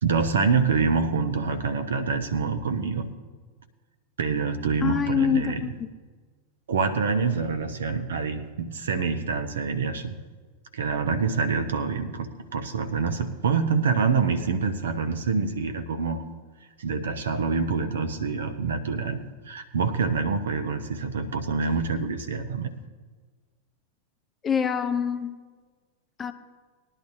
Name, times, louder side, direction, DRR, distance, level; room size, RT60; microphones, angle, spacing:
voice 1, 0.0-3.1 4.2-5.6 6.7-10.2 10.7-16.2 16.8-22.7, right 5 dB, 65° right, 8 dB, 0.9 m, -26 dB
voice 2, 4.8-5.7 24.4-25.4 26.2-26.3, left 7 dB, 20° left, 8 dB, 0.8 m, -25 dB
20.0 x 11.0 x 2.7 m, 1.4 s
figure-of-eight pair, 90°, 0 cm